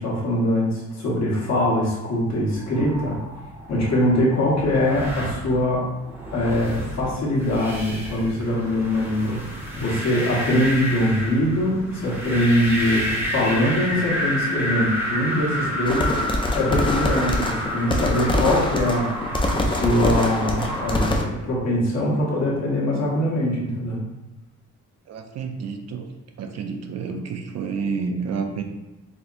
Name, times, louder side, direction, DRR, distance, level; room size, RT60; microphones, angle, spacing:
voice 1, 0.0-3.2 3.7-5.8 6.3-16.1 16.5-19.1 19.5-24.0, left 1 dB, 60° left, -5 dB, 1.2 m, -22 dB
sound 1, 2.5-21.0, equal, 10° right, 0.7 m, -30 dB
sound 2, 15.9-21.2, left 1 dB, 15° left, 0.3 m, -24 dB
voice 2, 25.1-26.1 26.4-28.6, right 5 dB, 60° right, 5 dB, 0.4 m, -29 dB
4.2 x 2.8 x 2.5 m, 1.0 s
wide cardioid pair, 145°, 30 cm